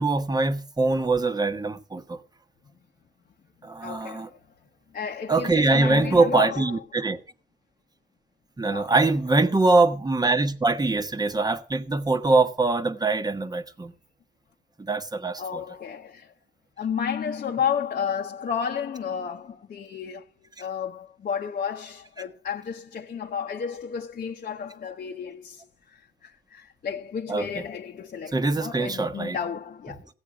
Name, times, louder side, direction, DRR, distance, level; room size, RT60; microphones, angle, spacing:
voice 1, 0.0-2.2 3.6-4.3 5.3-7.2 8.6-13.9 14.8-15.6 27.3-27.5 28.3-29.4, right 3 dB, 20° right, 1.1 m, -23 dB
voice 2, 3.8-4.4 4.9-6.8 8.7-9.1 15.4-16.3 16.8-20.2 20.6-30.1, left 7 dB, 45° left, 0.9 m, -32 dB
15.5 x 8.3 x 5.0 m
cardioid pair, 90°, 20 cm